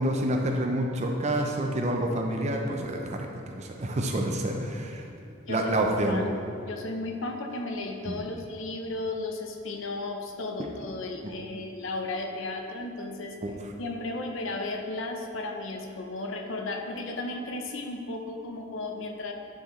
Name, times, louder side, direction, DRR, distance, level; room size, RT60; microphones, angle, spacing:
voice 1, 0.0-5.1 5.5-6.2 8.0-8.2 10.6-10.7 11.2-11.3 13.4-13.5, right 1 dB, 35° right, 2 dB, 0.6 m, -28 dB
voice 2, 6.1-13.4 13.8-19.3, left 2 dB, 65° left, 3 dB, 0.7 m, -34 dB
10.0 x 4.7 x 3.1 m, 2.5 s
head